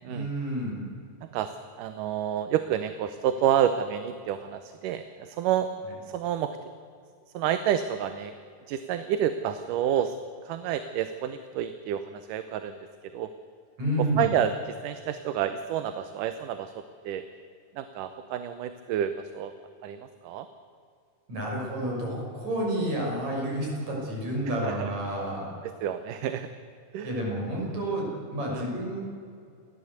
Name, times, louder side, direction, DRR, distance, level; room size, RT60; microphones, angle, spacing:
voice 1, 0.1-0.8 13.8-14.3 21.3-25.5 27.0-29.0, right 1 dB, 55° right, -2 dB, 7.5 m, -30 dB
voice 2, 1.2-5.7 6.1-6.6 7.3-8.3 8.7-10.2 10.4-12.8 13.1-13.3 14.0-17.2 17.7-19.5 19.8-20.5 24.6-24.9 25.8-26.5 26.9-27.2 28.5-28.7, right 10 dB, 80° right, 10 dB, 2.4 m, -29 dB
29.5 x 14.0 x 8.1 m, 2.4 s
omnidirectional pair, 3.8 m